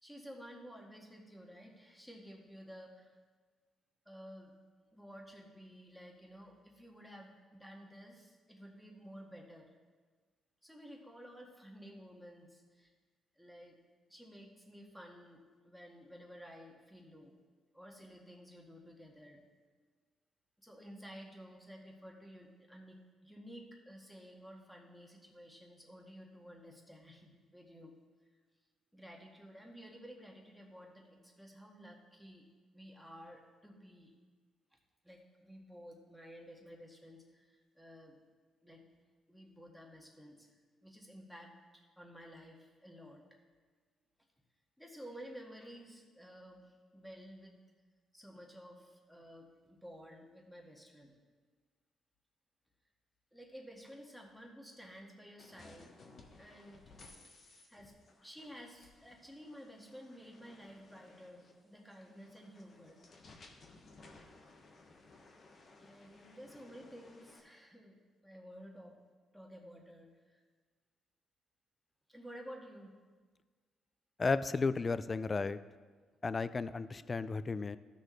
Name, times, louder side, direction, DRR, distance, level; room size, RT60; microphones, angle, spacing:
voice 1, 0.0-3.2 4.0-4.5 4.9-9.7 10.6-12.9 13.3-13.8 14.1-17.3 17.7-19.4 20.6-27.9 28.9-32.5 32.7-34.1 34.7-34.8 35.0-38.2 38.6-38.8 39.3-43.2 44.8-47.5 48.1-51.1 53.3-55.9 56.4-56.8 57.7-57.9 58.2-63.0 65.8-69.0 69.3-70.4 72.1-72.9, equal, ahead, 0 dB, 1.7 m, -53 dB
sound 1, 55.4-67.4, left 3 dB, 50° left, 1.3 m, -59 dB
voice 2, 74.2-75.6 76.2-77.8, left 4 dB, 30° left, 15 dB, 0.4 m, -33 dB
14.0 x 6.4 x 3.2 m, 1.5 s
cardioid pair, 90°, 0 cm